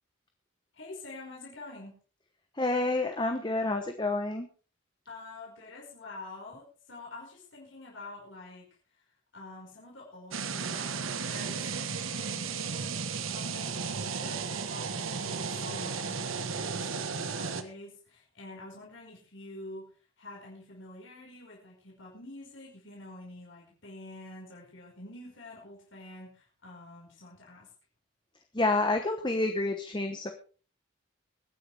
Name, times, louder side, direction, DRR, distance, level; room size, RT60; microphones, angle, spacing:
voice 1, 0.7-1.9 5.1-8.7 9.0-9.1 9.3-27.7, left 2 dB, 65° left, -3 dB, 5.3 m, -47 dB
voice 2, 2.6-4.5 28.5-30.3, left 2 dB, 20° left, 6 dB, 1.1 m, -28 dB
sound 1, 10.3-17.6, right 5 dB, 85° right, 1.4 m, -34 dB
23.5 x 10.0 x 3.5 m, 0.38 s
head